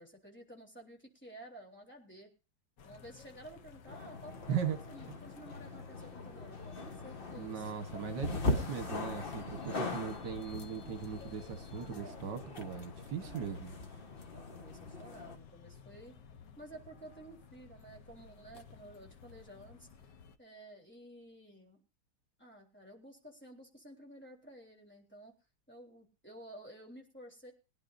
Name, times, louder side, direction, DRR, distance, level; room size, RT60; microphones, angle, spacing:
voice 1, 0.0-2.3 2.8-7.7 9.4-9.8 14.3-16.1 16.6-20.1 20.4-21.8 22.4-25.3 25.7-27.5, right 1 dB, 5° left, -1 dB, 3.6 m, -53 dB
sound 1, 2.8-20.4, left 6 dB, 85° left, 1.7 m, -55 dB
sound 2, 3.9-15.3, left 2 dB, 35° left, 1.3 m, -40 dB
voice 2, 7.4-13.8, right 7 dB, 75° right, 8 dB, 1.8 m, -39 dB
22.5 x 11.0 x 2.6 m, 0.34 s
omnidirectional pair, 1.8 m